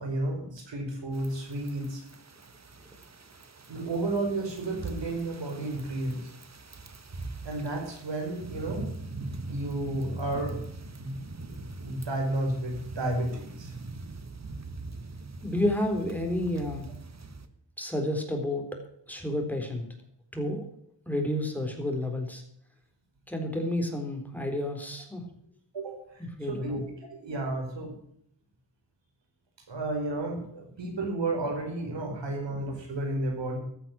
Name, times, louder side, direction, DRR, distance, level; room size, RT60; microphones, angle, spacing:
voice 1, 0.0-2.0 3.7-6.3 7.4-8.9 9.4-10.6 11.0-11.1 11.4-13.7 25.7-26.8 27.1-28.0 29.7-33.6, right 2 dB, 90° right, 2 dB, 5.0 m, -32 dB
sound 1, 1.1-17.5, right 2 dB, 40° right, 1.4 m, -42 dB
voice 2, 15.4-16.9 17.8-18.6 19.1-19.8 20.3-20.6 21.1-22.4 23.3-25.2 26.2-26.8, left 1 dB, 5° left, 2 dB, 3.9 m, -30 dB
14.5 x 9.3 x 6.3 m, 0.68 s
wide cardioid pair, 85°, 43 cm